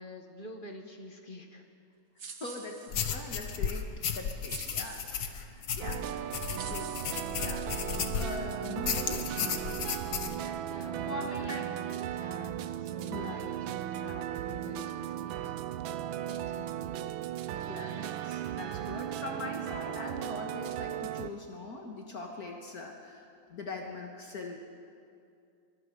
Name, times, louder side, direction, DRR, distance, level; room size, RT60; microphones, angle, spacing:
voice 1, 0.0-1.6 6.2-6.7 10.6-17.4, left 2 dB, 25° left, 3 dB, 1.9 m, -48 dB
sound 1, 2.2-3.3 4.5-5.4 6.1-6.2 6.6-7.9, right 5 dB, 40° right, 1.3 m, -47 dB
voice 2, 2.4-6.1 6.5-6.9 7.3-11.7 13.1-13.7 17.7-24.6, left 2 dB, 50° left, 1 dB, 2.0 m, -42 dB
sound 2, 2.9-8.4 8.8-10.4, left 7 dB, 70° left, 1.8 m, -34 dB
sound 3, 5.8-21.3, right 11 dB, 85° right, 1.5 m, -36 dB
24.5 x 22.5 x 5.3 m, 2.4 s
omnidirectional pair, 2.1 m